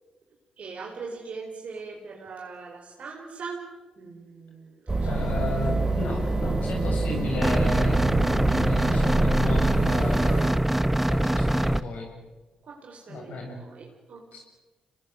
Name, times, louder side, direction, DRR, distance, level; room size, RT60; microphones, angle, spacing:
voice 1, 0.6-5.2 12.6-14.4, right 4 dB, 60° right, -1 dB, 4.7 m, -41 dB
sound 1, 4.9-10.5, right 2 dB, 25° right, 3.5 m, -26 dB
voice 2, 5.0-10.4 11.1-12.1 13.1-13.6 14.3-14.4, left 2 dB, 70° left, 1 dB, 7.9 m, -34 dB
sound 2, 7.4-11.8, right 1 dB, 5° right, 1.0 m, -23 dB
26.0 x 20.0 x 8.2 m, 1.2 s
hypercardioid pair, 45°, 3 cm